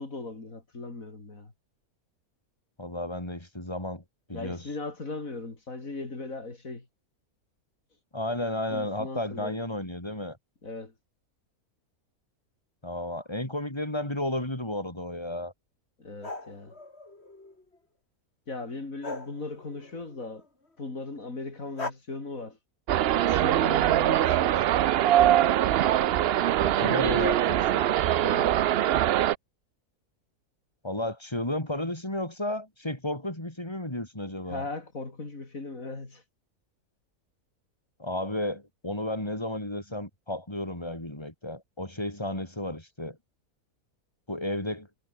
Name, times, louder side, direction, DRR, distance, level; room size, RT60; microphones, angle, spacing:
voice 1, 0.0-1.5 4.3-6.9 8.7-9.6 10.6-10.9 16.0-16.7 18.5-20.5 20.8-22.6 23.3-24.9 28.1-28.6 34.5-36.2, left 3 dB, 65° left, 4.4 m, -38 dB
voice 2, 2.8-4.0 4.3-4.7 8.1-10.4 12.8-15.5 26.6-27.9 30.8-34.6 38.0-43.2 44.3-44.9, left 1 dB, 15° left, 4.9 m, -33 dB
sound 1, 16.2-17.8 19.0-20.4 21.8-21.9, left 2 dB, 45° left, 4.4 m, -40 dB
sound 2, 22.9-29.3, right 12 dB, 70° right, 0.6 m, -23 dB
omnidirectional pair, 1.6 m